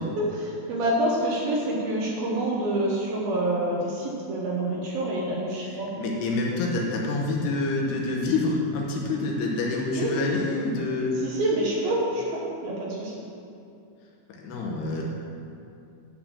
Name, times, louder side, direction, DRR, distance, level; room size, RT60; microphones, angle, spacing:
voice 1, 0.2-5.9 10.0-10.1 11.2-13.1, right 1 dB, 70° right, -3 dB, 2.6 m, -27 dB
voice 2, 5.6-11.2 14.3-15.0, left 3 dB, 70° left, -1 dB, 2.9 m, -27 dB
11.0 x 5.3 x 7.3 m, 2.6 s
omnidirectional pair, 5.3 m